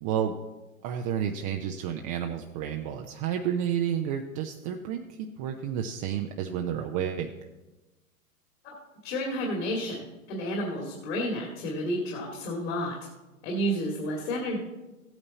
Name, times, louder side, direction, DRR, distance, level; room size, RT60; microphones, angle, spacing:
voice 1, 0.0-0.3 0.8-5.0 5.4-7.3, right 9 dB, 25° right, 3 dB, 0.5 m, -30 dB
voice 2, 9.0-13.0 13.4-14.6, equal, 45° left, -1 dB, 2.4 m, -31 dB
15.5 x 9.0 x 4.2 m, 1.1 s
figure-of-eight pair, 115°, 42 cm